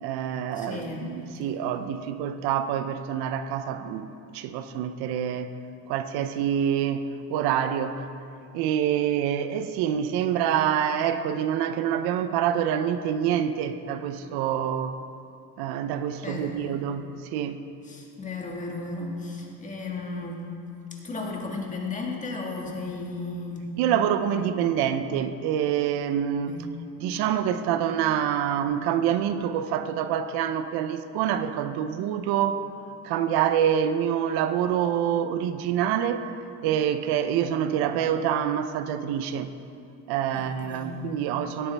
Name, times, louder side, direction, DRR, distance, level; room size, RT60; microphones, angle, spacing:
voice 1, 0.0-4.1 4.3-5.5 5.9-8.1 8.5-15.0 15.6-17.6 23.8-26.5 27.0-32.6 33.0-36.3 36.6-39.5 40.1-41.7, right 9 dB, 80° right, 11 dB, 0.7 m, -26 dB
voice 2, 0.5-1.1 16.2-16.6 17.8-20.4 20.9-23.7 24.3-24.4 26.5-26.7 40.3-41.0, left 3 dB, 20° left, -1 dB, 1.6 m, -35 dB
18.0 x 8.2 x 3.4 m, 2.5 s
cardioid pair, 150°, 38 cm